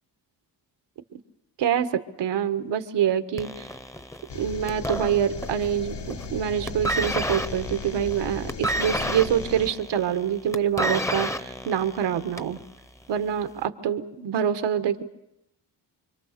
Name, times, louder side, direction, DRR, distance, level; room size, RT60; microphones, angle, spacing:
voice 1, 1.6-3.7 4.3-12.6 13.1-15.0, right 9 dB, 85° right, 9 dB, 1.5 m, -26 dB
sound 1, 3.4-5.7 6.0-6.4 6.7-12.6 13.4-13.5, equal, 5° left, 0.8 m, -30 dB
sound 2, 4.3-9.7, left 4 dB, 80° left, 2.4 m, -36 dB
26.5 x 25.0 x 6.7 m, 0.86 s
cardioid pair, 115°, 41 cm